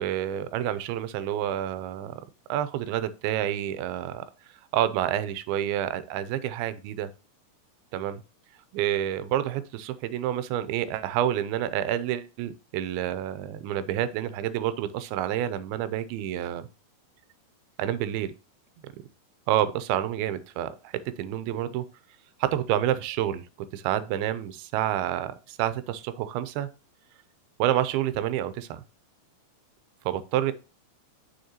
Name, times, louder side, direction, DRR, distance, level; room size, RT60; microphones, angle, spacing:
voice 1, 0.0-2.1 2.5-4.2 4.7-7.1 7.9-8.2 8.7-16.7 17.8-18.3 19.5-21.8 22.4-23.5 23.7-26.7 27.6-28.8 30.1-30.5, right 11 dB, 85° right, 2.5 m, -28 dB
6.5 x 6.5 x 2.8 m
omnidirectional pair, 4.3 m